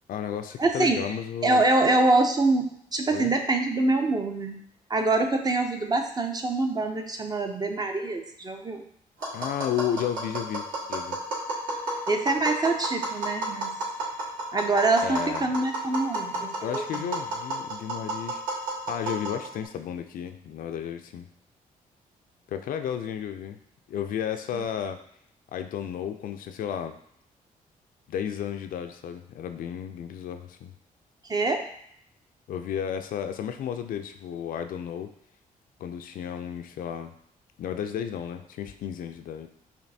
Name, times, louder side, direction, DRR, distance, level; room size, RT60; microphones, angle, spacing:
voice 1, 0.1-1.6 3.1-3.3 9.3-11.2 15.0-15.5 16.6-18.4 18.9-21.3 22.5-23.6 23.9-25.0 25.5-27.0 28.1-30.7 32.5-35.1 35.8-37.1 37.6-39.5, left 9 dB, 65° left, 7 dB, 0.4 m, -33 dB
voice 2, 0.6-1.1 1.4-4.6 4.9-8.8 12.1-13.8 14.5-17.1 24.5-24.6 31.3-31.7, right 2 dB, 25° right, 5 dB, 0.5 m, -25 dB
Tap, 9.2-19.7, right 2 dB, 65° right, 1.5 m, -32 dB
5.1 x 2.6 x 2.7 m, 0.68 s
cardioid pair, 80°, 15 cm